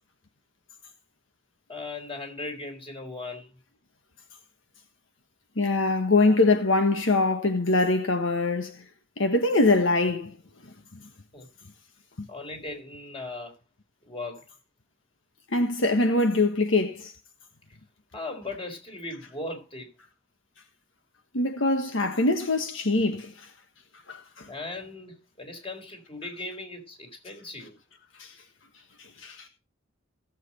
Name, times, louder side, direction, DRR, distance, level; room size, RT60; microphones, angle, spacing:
voice 1, 1.7-3.6 6.3-6.4 11.3-11.5 12.3-13.6 14.0-14.4 18.1-19.9 24.5-27.8, left 2 dB, 30° left, 4.0 m, -38 dB
voice 2, 5.6-8.8 9.2-10.4 10.6-11.0 12.2-12.3 15.5-17.1 21.3-23.5 24.1-24.5 28.2-28.3 29.0-29.5, left 2 dB, 80° left, 1.5 m, -24 dB
17.5 x 7.7 x 4.2 m
head